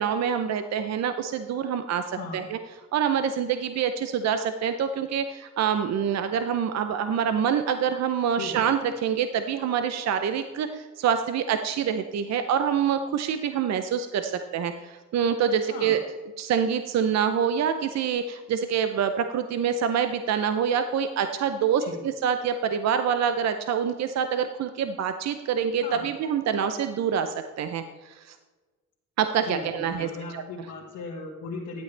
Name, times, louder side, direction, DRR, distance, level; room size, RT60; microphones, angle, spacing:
voice 1, 0.0-2.6 2.9-16.0 16.4-28.4 29.2-30.4, right 7 dB, 60° right, 8 dB, 0.7 m, -26 dB
voice 2, 2.1-2.5 8.4-8.6 15.7-16.0 21.8-22.0 25.8-26.1 29.4-31.8, left 3 dB, 75° left, -5 dB, 2.1 m, -37 dB
12.0 x 8.3 x 3.3 m, 1.3 s
cardioid pair, 90°, 30 cm